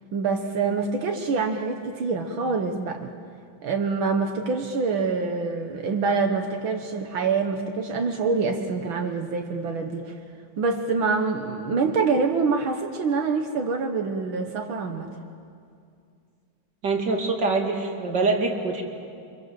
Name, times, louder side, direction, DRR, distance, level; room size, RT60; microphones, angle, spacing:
voice 1, 0.1-3.1 3.6-10.2 10.6-15.1, right 4 dB, 75° right, 4 dB, 2.1 m, -25 dB
voice 2, 16.8-18.8, right 3 dB, 55° right, 2 dB, 3.3 m, -24 dB
29.0 x 25.5 x 7.7 m, 2.4 s
omnidirectional pair, 2.2 m